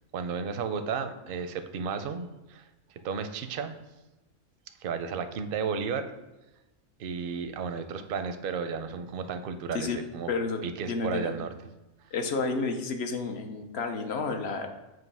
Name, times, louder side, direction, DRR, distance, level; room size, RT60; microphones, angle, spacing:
voice 1, 0.1-2.6 3.0-3.7 4.8-6.1 7.0-10.3 10.6-11.5, right 6 dB, 60° right, 9 dB, 0.6 m, -33 dB
voice 2, 10.3-11.3 12.1-14.7, left 4 dB, 60° left, 5 dB, 0.9 m, -31 dB
7.6 x 2.7 x 5.4 m, 1.1 s
omnidirectional pair, 1.3 m